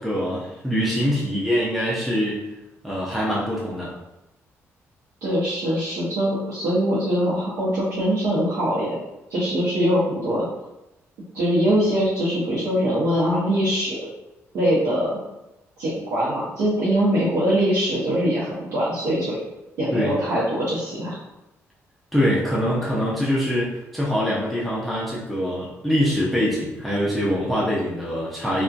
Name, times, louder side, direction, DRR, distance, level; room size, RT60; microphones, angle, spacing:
voice 1, 0.0-2.4 2.8-3.9 19.9-20.2 22.1-28.6, equal, ahead, -6 dB, 0.4 m, -24 dB
voice 2, 5.2-9.0 9.3-10.5 11.3-14.1 14.5-15.2 15.8-19.4 19.8-21.2, equal, 75° right, -10 dB, 0.7 m, -22 dB
2.6 x 2.1 x 2.4 m, 0.94 s
cardioid pair, 140°, 5 cm